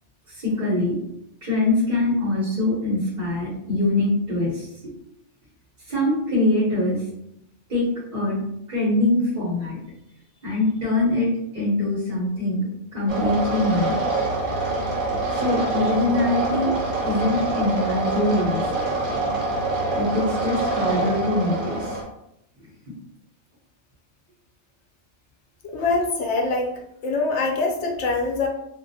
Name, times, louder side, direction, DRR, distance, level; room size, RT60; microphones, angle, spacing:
voice 1, 0.3-1.0 1.4-4.7 5.9-7.0 7.7-8.4 8.7-9.8 10.4-13.9 15.3-16.7 17.0-18.7 19.9-22.0 22.6-22.7, left 2 dB, 45° right, -8 dB, 1.0 m, -23 dB
sound 1, 13.1-22.0, right 3 dB, 75° right, 1.0 m, -25 dB
voice 2, 25.6-26.7 27.0-28.5, left 3 dB, 75° left, 1 dB, 0.9 m, -24 dB
2.4 x 2.0 x 2.6 m, 0.79 s
omnidirectional pair, 1.2 m